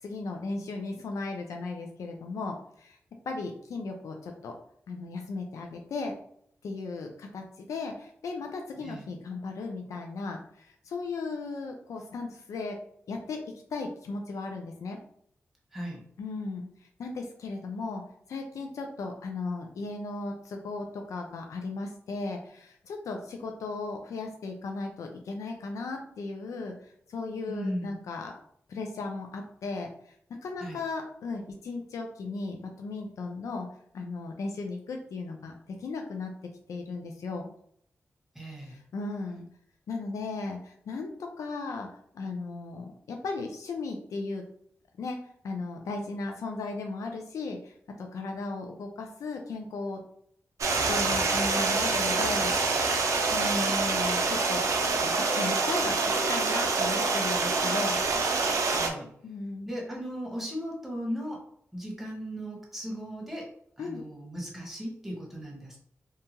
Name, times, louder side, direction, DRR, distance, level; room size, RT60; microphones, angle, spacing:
voice 1, 0.0-3.0 3.3-4.5 4.9-6.2 6.6-12.8 13.1-15.0 16.2-16.7 17.0-18.0 18.3-28.3 28.7-29.9 30.4-33.7 33.9-36.3 36.7-37.5 38.6-39.4 39.9-41.9 42.1-44.4 45.0-45.2 45.4-50.0 50.8-54.7 55.0-58.0 59.2-59.7 63.8-64.0, left 3 dB, 90° left, 3 dB, 0.3 m, -36 dB
voice 2, 15.7-16.0 27.5-27.9 30.6-30.8 38.3-38.8 58.7-59.1 59.7-61.4 61.7-63.5 63.8-65.8, equal, 5° right, -2 dB, 1.1 m, -37 dB
Stream, 50.6-58.9, right 3 dB, 80° right, 0.4 m, -26 dB
2.7 x 2.3 x 2.8 m, 0.68 s
cardioid pair, 55°, 5 cm